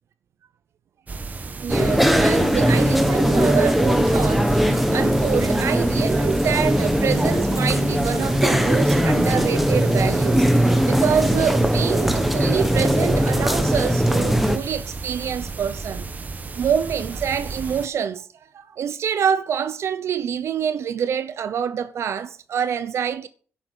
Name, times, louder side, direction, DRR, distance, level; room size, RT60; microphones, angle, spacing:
sound 1, 1.1-17.9, right 4 dB, 35° right, 1.4 m, -33 dB
voice 1, 1.6-16.1 16.6-18.3 18.5-23.3, right 8 dB, 70° right, 0.8 m, -26 dB
sound 2, 1.7-14.6, equal, ahead, 1.5 m, -20 dB
11.0 x 8.5 x 8.3 m
wide cardioid pair, 125°, 5 cm